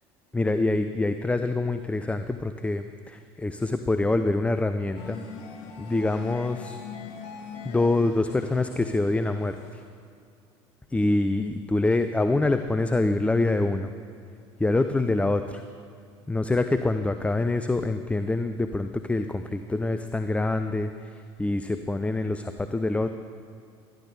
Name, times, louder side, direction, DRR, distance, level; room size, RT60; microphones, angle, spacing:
voice 1, 0.3-5.2 5.8-6.8 7.6-9.8 10.9-13.9 14.6-15.6 16.3-23.1, left 2 dB, 10° left, 9 dB, 0.4 m, -25 dB
sound 1, 5.0-9.9, left 6 dB, 65° left, 1.4 m, -42 dB
13.5 x 11.5 x 4.0 m, 2.4 s
hypercardioid pair, 75°, 15 cm